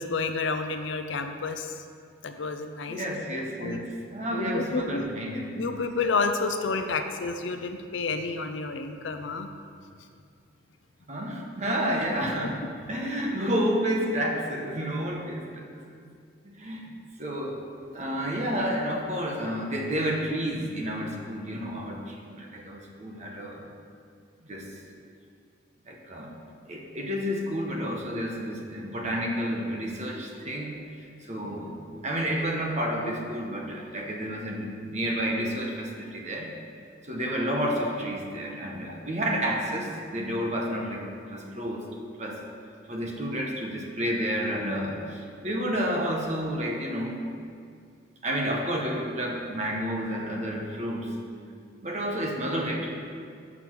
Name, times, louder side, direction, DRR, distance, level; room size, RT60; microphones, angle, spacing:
voice 1, 0.0-1.8 2.2-3.0 3.6-3.8 4.3-5.1 5.6-9.5 38.9-39.0, left 4 dB, 70° left, 7 dB, 0.6 m, -30 dB
voice 2, 2.9-5.7 11.1-12.6 12.9-15.6 16.4-16.9 17.2-17.6 17.9-23.7 24.4-24.7 25.9-30.8 31.2-36.5 37.0-41.8 42.2-42.4 42.9-47.2 48.2-51.1 51.8-53.1, equal, 35° right, 0 dB, 1.0 m, -30 dB
6.9 x 6.0 x 6.0 m, 2.3 s
head